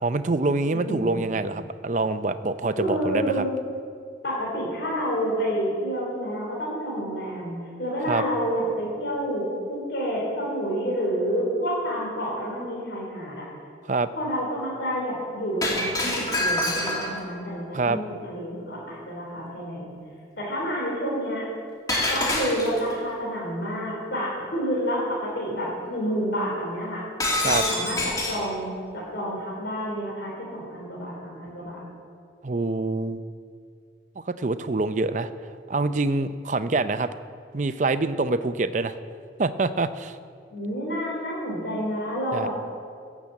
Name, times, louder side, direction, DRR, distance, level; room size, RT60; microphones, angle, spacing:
voice 1, 0.0-3.4 8.1-8.2 13.9-14.1 17.7-18.0 27.4-27.6 32.4-33.2 34.3-35.3 35.7-37.1 37.5-38.9 39.4-40.2 42.3-42.5, right 3 dB, 40° right, 12 dB, 0.5 m, -25 dB
voice 2, 0.7-1.3 2.8-3.5 4.2-13.5 14.2-19.9 20.4-21.5 22.1-27.0 27.4-31.8 40.5-42.5, equal, 85° left, -5 dB, 3.7 m, -29 dB
Shatter, 15.6-17.3 21.9-22.9 27.2-28.5, left 1 dB, 20° left, 2.3 m, -26 dB
15.5 x 7.4 x 8.4 m, 2.3 s
head